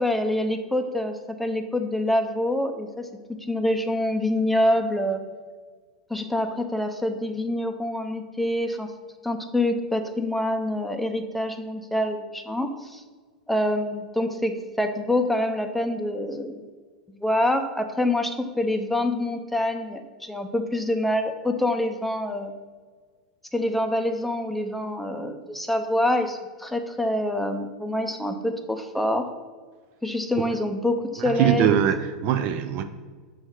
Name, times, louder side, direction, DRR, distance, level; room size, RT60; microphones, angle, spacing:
voice 1, 0.0-2.9 3.4-5.2 6.1-8.9 9.2-13.0 13.5-16.6 17.1-22.5 23.5-29.3 30.0-31.8, left 1 dB, 5° left, 6 dB, 0.6 m, -26 dB
voice 2, 31.2-32.8, right 10 dB, 45° right, 9 dB, 0.4 m, -22 dB
6.1 x 3.1 x 4.9 m, 1.5 s
hypercardioid pair, 95°, 4 cm